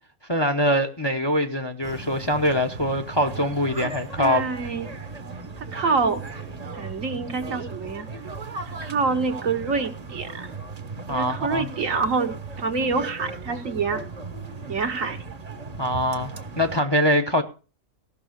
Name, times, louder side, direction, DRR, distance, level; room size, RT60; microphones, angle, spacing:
voice 1, 0.3-4.5 11.1-11.7 15.8-17.4, equal, 20° left, 0.8 m, -23 dB
sound 1, 1.8-16.8, right 3 dB, 30° right, 1.0 m, -37 dB
voice 2, 4.2-4.9 5.7-6.2 6.7-8.1 8.7-10.6 11.1-14.0 14.7-15.2, right 4 dB, 70° right, 1.7 m, -26 dB
15.5 x 6.1 x 6.4 m
omnidirectional pair, 1.4 m